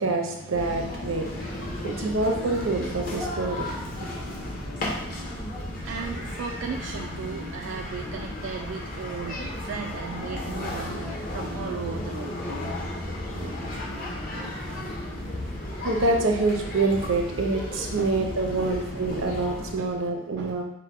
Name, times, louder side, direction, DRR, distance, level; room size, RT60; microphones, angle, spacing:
voice 1, 0.0-4.1 14.7-14.8 15.7-20.6, right 2 dB, 90° right, 2 dB, 0.8 m, -26 dB
sound 1, 0.5-19.7, left 1 dB, 45° left, 0.9 m, -34 dB
voice 2, 5.6-12.3 13.4-13.6 18.0-18.2 18.6-18.8 19.1-19.3 19.8-20.0 20.4-20.6, right 5 dB, 70° right, 2 dB, 0.3 m, -36 dB
4.8 x 2.2 x 4.5 m, 0.81 s
head